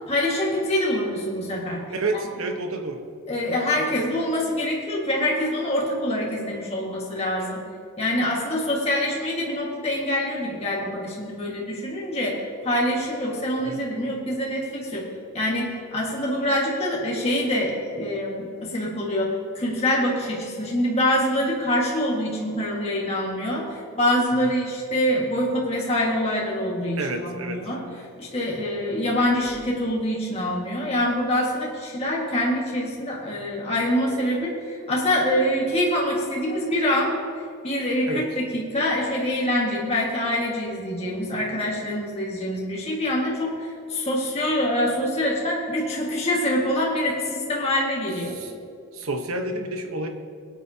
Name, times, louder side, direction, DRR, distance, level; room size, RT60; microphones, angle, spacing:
voice 1, 0.1-1.8 2.1-2.2 3.3-7.6 8.0-15.1 15.3-37.1 37.6-48.4, left 1 dB, 30° left, -4 dB, 1.7 m, -25 dB
voice 2, 1.9-3.1 3.8-4.1 13.6-13.8 27.0-27.6 38.1-38.3 48.3-48.5 48.9-50.1, right 2 dB, 75° right, 5 dB, 1.1 m, -29 dB
21.0 x 9.1 x 2.8 m, 2.4 s
head